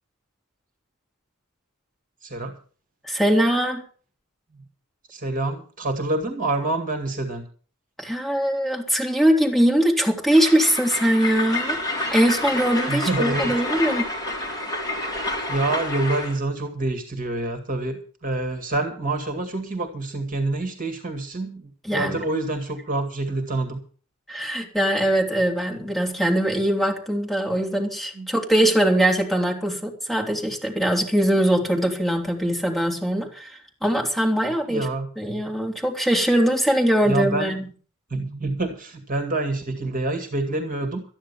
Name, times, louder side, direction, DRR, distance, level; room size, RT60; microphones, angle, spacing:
voice 1, 2.2-2.5 4.5-4.6 5.1-7.4 12.9-13.5 15.5-23.8 28.2-28.3 34.7-35.1 37.0-37.6 38.1-41.0, right 2 dB, 40° right, 7 dB, 2.2 m, -27 dB
voice 2, 3.0-3.8 8.0-11.8 12.1-14.1 21.8-22.2 24.3-34.9 35.2-37.7, right 1 dB, ahead, -1 dB, 3.4 m, -21 dB
Train, 10.3-16.4, left 2 dB, 15° left, 3.4 m, -28 dB
13.5 x 10.5 x 7.1 m, 0.40 s
head